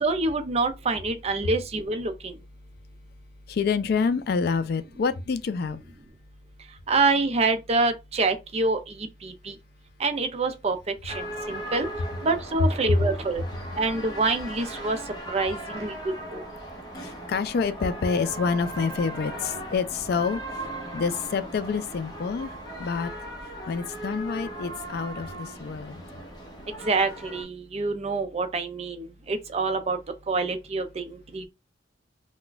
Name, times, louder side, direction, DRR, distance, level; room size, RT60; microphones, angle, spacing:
voice 1, 0.0-2.3 6.9-8.8 9.2-9.5 10.0-11.9 12.2-13.4 13.8-15.0 15.3-15.9 16.3-16.4 26.9-30.0 30.3-31.5, right 3 dB, 35° right, 0.5 m, -26 dB
voice 2, 3.5-5.8 11.3-11.5 12.9-13.0 16.9-23.1 23.7-26.0, left 5 dB, 60° left, 0.3 m, -27 dB
sound 1, 11.1-27.4, right 1 dB, 20° left, 0.8 m, -38 dB
2.4 x 2.2 x 3.8 m
head